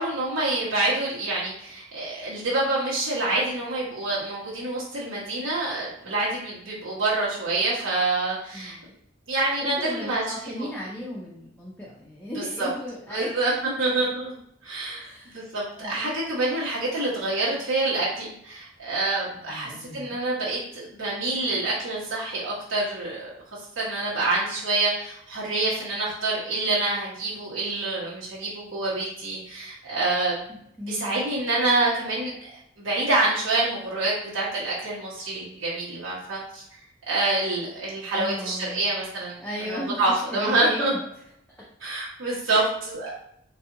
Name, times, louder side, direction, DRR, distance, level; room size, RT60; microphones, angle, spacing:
voice 1, 0.0-8.7 9.3-10.7 12.3-12.7 13.1-14.3 14.6-15.1 15.3-30.4 30.9-32.5 32.8-36.6 37.1-40.9 41.8-43.1, right 2 dB, 80° right, -8 dB, 1.3 m, -27 dB
voice 2, 8.5-9.0 9.6-13.3 14.9-15.4 15.8-16.5 19.5-20.2 30.8-31.2 38.1-38.8 39.4-40.0 40.3-41.0 41.6-41.7 42.5-42.6, left 1 dB, 10° left, -5 dB, 0.5 m, -36 dB
4.0 x 2.6 x 2.6 m, 0.73 s
head